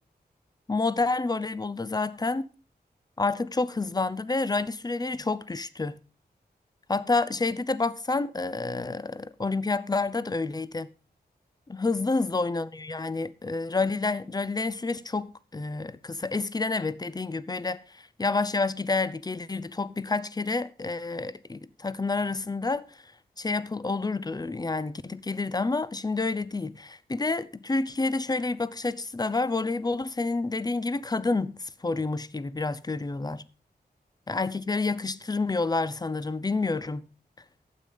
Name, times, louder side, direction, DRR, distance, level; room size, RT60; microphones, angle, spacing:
voice 1, 0.7-2.5 3.2-6.0 6.9-10.9 11.7-22.9 23.4-33.4 34.3-37.1, left 3 dB, 25° left, 0.7 m, -29 dB
12.0 x 8.4 x 5.3 m
wide cardioid pair, 105°, 17 cm